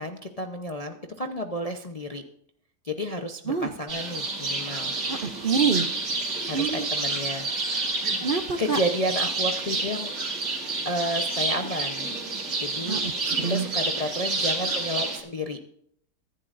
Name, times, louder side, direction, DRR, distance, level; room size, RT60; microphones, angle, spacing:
voice 1, 0.0-2.2 2.8-4.9 6.5-7.9 8.6-10.1 10.5-12.1 12.6-13.0 13.5-15.6, equal, 35° left, 4 dB, 0.6 m, -31 dB
sound 1, 3.9-15.2, right 3 dB, 80° right, 3.0 m, -29 dB
voice 2, 5.1-5.9 6.5-6.9 8.2-8.8 12.9-13.1 13.4-13.7, right 6 dB, 50° right, 6 dB, 0.7 m, -26 dB
23.0 x 10.5 x 2.6 m, 0.67 s
omnidirectional pair, 1.8 m